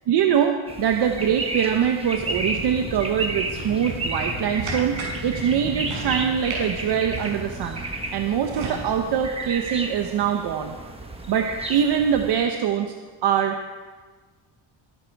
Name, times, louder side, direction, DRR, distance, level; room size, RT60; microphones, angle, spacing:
voice 1, 0.1-7.8 8.1-10.7 11.3-12.9 13.2-13.6, right 8 dB, 55° right, 4 dB, 1.1 m, -23 dB
sound 1, 0.7-12.3, right 2 dB, 10° right, 1.2 m, -33 dB
sound 2, 2.1-9.2, left 1 dB, 20° left, 5.0 m, -37 dB
sound 3, 3.6-8.8, right 4 dB, 80° right, 6.0 m, -37 dB
22.5 x 11.5 x 4.7 m, 1.4 s
cardioid pair, 180°, 47 cm